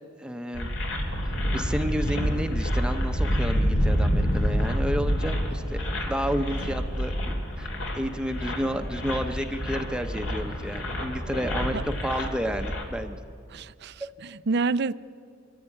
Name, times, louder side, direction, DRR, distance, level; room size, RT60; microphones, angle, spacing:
voice 1, 0.2-0.7 1.2-7.2 7.6-13.2 14.0-14.1, equal, 5° right, 7 dB, 0.8 m, -31 dB
sound 1, 0.5-12.8, equal, 70° left, 3.4 m, -28 dB
voice 2, 13.5-14.9, right 4 dB, 60° right, 16 dB, 0.6 m, -28 dB
24.0 x 15.0 x 9.8 m, 2.3 s
head